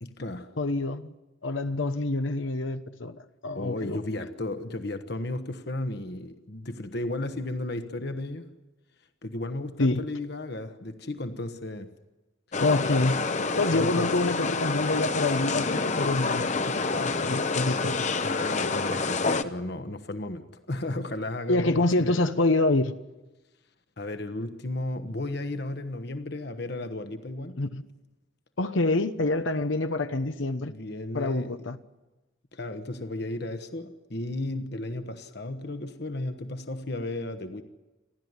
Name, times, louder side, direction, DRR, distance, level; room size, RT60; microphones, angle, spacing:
voice 1, 0.0-0.5 3.5-8.5 9.2-11.9 13.0-13.1 13.7-14.1 18.2-22.2 24.0-27.6 30.7-31.7 32.5-37.6, left 2 dB, 55° left, 1.2 m, -34 dB
voice 2, 0.6-1.1 1.4-4.0 9.8-10.0 12.6-13.2 13.6-18.2 21.5-22.9 27.6-27.8 28.6-30.7 31.1-31.8, left 2 dB, 70° left, 1.0 m, -26 dB
sound 1, 12.5-19.4, left 3 dB, 35° left, 0.8 m, -28 dB
30.0 x 12.5 x 9.6 m
head